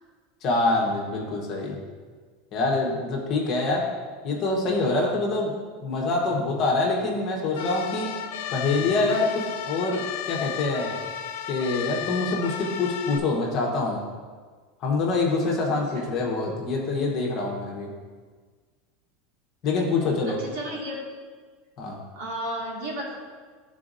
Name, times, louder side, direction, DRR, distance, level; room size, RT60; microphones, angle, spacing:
voice 1, 0.4-1.8 2.5-3.9 4.2-5.5 5.8-8.2 8.5-11.0 11.5-14.0 14.8-17.9 19.6-20.4 21.8-22.0, left 3 dB, 30° left, -1 dB, 1.0 m, -25 dB
sound 1, 7.6-13.2, left 9 dB, 85° left, 0.4 m, -34 dB
voice 2, 15.7-16.1 20.3-21.0 22.1-23.1, right 1 dB, 70° right, -4 dB, 1.9 m, -33 dB
11.5 x 4.0 x 2.6 m, 1.5 s
supercardioid pair, 175°, 0 cm